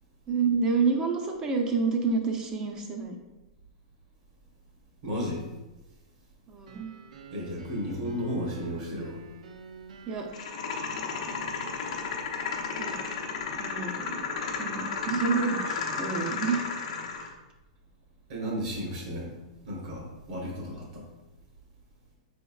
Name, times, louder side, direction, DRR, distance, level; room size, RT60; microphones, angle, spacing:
voice 1, 0.3-3.2 6.5-6.9 10.1-10.3 12.8-13.0 13.6-14.2 14.6-16.7 17.2-17.3, right 5 dB, 20° right, 3 dB, 0.5 m, -28 dB
voice 2, 5.0-5.4 7.3-9.2 18.3-19.3 19.6-21.1, equal, 60° right, -2 dB, 1.5 m, -33 dB
sound 1, 6.7-12.2, right 4 dB, 90° right, 0.4 m, -49 dB
sound 2, 10.3-17.3, left 5 dB, 70° left, 0.7 m, -33 dB
5.2 x 3.5 x 2.3 m, 1.1 s
supercardioid pair, 160°, 4 cm